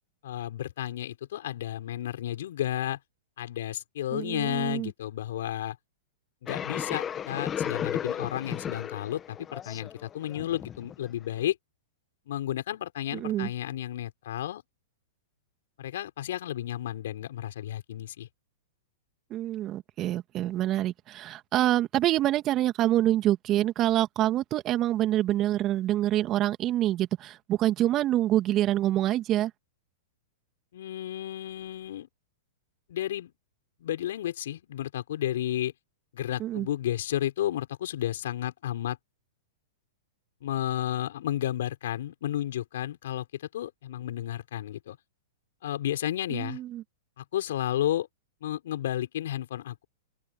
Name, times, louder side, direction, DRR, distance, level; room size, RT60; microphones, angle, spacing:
voice 1, 0.2-3.0 3.4-5.8 6.4-11.6 12.3-14.6 15.8-18.3 30.7-32.1 32.9-33.3 33.8-35.7 36.1-39.0 40.4-45.0 45.6-46.6 47.2-48.1 48.4-49.8, left 12 dB, 65° left, 5.0 m, -32 dB
voice 2, 4.1-4.9 13.1-13.5 19.3-29.5 36.4-36.7 46.3-46.8, right 13 dB, 35° right, 2.4 m, -26 dB
sound 1, 6.5-11.4, left 8 dB, 25° left, 1.4 m, -34 dB
hypercardioid pair, 110°, 0 cm